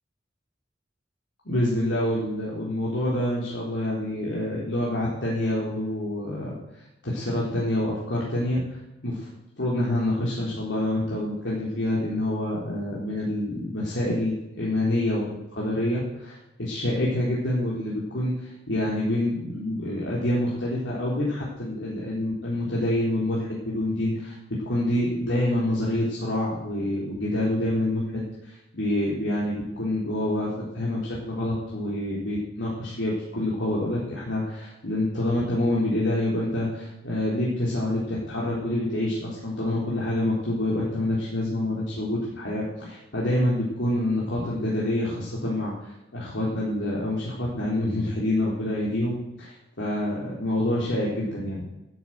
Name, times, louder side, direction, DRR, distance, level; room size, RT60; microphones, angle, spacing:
voice 1, 1.4-6.5 7.0-9.3 9.6-24.4 24.6-51.6, left 1 dB, 90° left, -6 dB, 3.8 m, -27 dB
12.0 x 8.1 x 7.9 m, 0.95 s
head